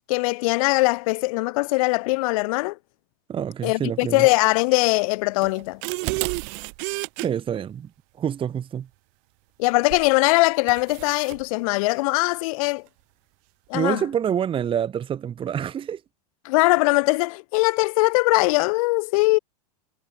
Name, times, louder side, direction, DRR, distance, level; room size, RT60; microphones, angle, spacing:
voice 1, 0.1-2.8 3.6-5.8 9.6-12.8 13.7-14.0 16.4-19.4, left 24 dB, 60° left, 0.8 m, -21 dB
voice 2, 3.3-4.3 7.2-7.9 8.2-8.9 13.7-16.0, right 9 dB, 25° right, 1.4 m, -27 dB
sound 1, 5.4-7.3 9.9-10.1 10.7-11.4, right 40 dB or more, 55° right, 7.5 m, -30 dB
hypercardioid pair, 105°, 21 cm